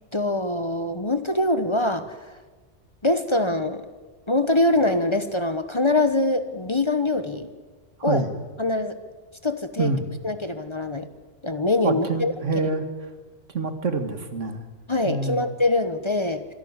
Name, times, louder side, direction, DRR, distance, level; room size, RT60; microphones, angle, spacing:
voice 1, 0.1-2.2 3.0-3.8 4.3-7.5 8.0-8.2 8.6-9.0 9.4-9.9 10.2-11.1 11.4-12.3 12.6-12.7 14.9-16.5, left 2 dB, 25° left, 10 dB, 1.1 m, -23 dB
voice 2, 8.0-8.3 9.8-10.0 11.8-12.9 13.5-14.6 15.1-15.4, right 4 dB, 85° right, 8 dB, 2.1 m, -26 dB
25.5 x 12.0 x 9.8 m, 1.3 s
omnidirectional pair, 1.2 m